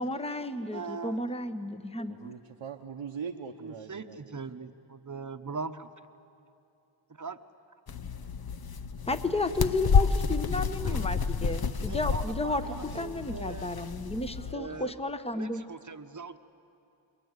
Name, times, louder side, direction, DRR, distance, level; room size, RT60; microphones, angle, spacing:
voice 1, 0.0-2.3 9.1-12.6 12.9-15.6, left 2 dB, 10° left, 10 dB, 1.0 m, -32 dB
voice 2, 0.7-1.2 3.6-5.9 7.1-7.4 10.0-10.1 10.8-11.1 11.8-13.7 14.5-15.0 15.3-16.4, right 4 dB, 35° right, 9 dB, 1.0 m, -40 dB
voice 3, 2.1-4.4, right 6 dB, 80° right, 1 dB, 1.1 m, -41 dB
sound 1, 7.9-14.6, left 5 dB, 45° left, 0.8 m, -30 dB
29.5 x 22.0 x 8.2 m, 2.8 s
wide cardioid pair, 80°, 50 cm